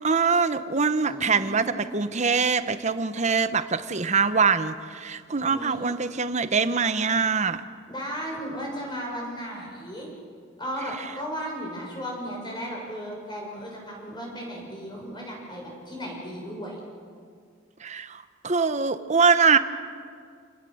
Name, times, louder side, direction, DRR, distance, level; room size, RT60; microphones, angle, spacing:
voice 1, 0.0-1.6 1.9-4.7 5.0-7.6 17.8-18.1 18.4-19.6, right 5 dB, 35° right, 11 dB, 1.0 m, -23 dB
voice 2, 1.1-1.7 5.4-5.9 7.9-10.1 10.6-16.8, equal, 25° left, -1 dB, 7.2 m, -35 dB
28.5 x 19.5 x 7.9 m, 2.1 s
head